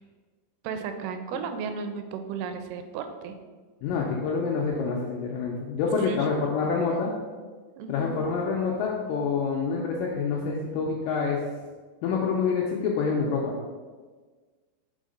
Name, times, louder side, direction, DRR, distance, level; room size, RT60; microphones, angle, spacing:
voice 1, 0.6-3.4 6.0-6.3 7.8-8.2, right 5 dB, 85° right, 7 dB, 2.5 m, -34 dB
voice 2, 3.8-7.1 7.9-11.4 12.0-13.5, left 5 dB, 85° left, -1 dB, 2.0 m, -27 dB
5.6 x 3.7 x 5.2 m, 1.4 s
omnidirectional pair, 4.5 m